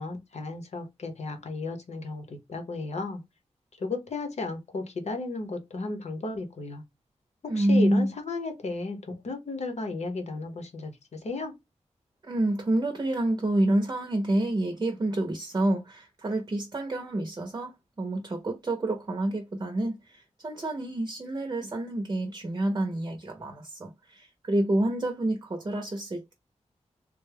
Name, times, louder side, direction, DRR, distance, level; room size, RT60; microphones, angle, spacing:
voice 1, 0.0-3.2 3.8-6.8 7.4-11.5, left 3 dB, 65° left, 0.9 m, -34 dB
voice 2, 7.5-8.1 12.2-26.3, right 1 dB, 35° right, 0.7 m, -28 dB
3.4 x 2.2 x 3.3 m
wide cardioid pair, 115°, 12 cm